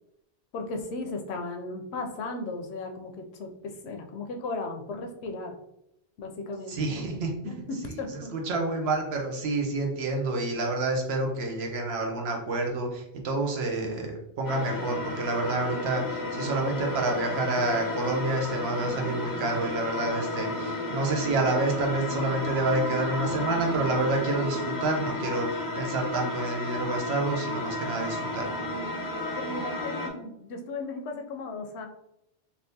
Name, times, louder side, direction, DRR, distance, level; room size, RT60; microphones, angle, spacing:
voice 1, 0.5-5.6 6.2-6.8 7.4-8.3 29.3-31.9, left 3 dB, 85° left, 4 dB, 0.9 m, -36 dB
voice 2, 6.7-7.6 8.3-28.5, right 2 dB, 75° right, 2 dB, 1.0 m, -28 dB
sound 1, 14.4-30.1, left 2 dB, 30° left, 0.4 m, -33 dB
3.3 x 2.7 x 2.7 m, 0.83 s
omnidirectional pair, 1.1 m